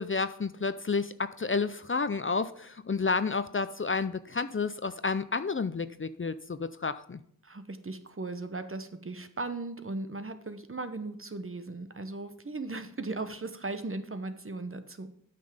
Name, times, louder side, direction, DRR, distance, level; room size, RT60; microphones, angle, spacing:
voice 1, 0.0-7.2, left 4 dB, 40° left, 13 dB, 0.5 m, -30 dB
voice 2, 7.4-15.1, right 2 dB, 40° right, 9 dB, 0.9 m, -37 dB
8.9 x 5.9 x 5.1 m, 0.67 s
wide cardioid pair, 45°, 33 cm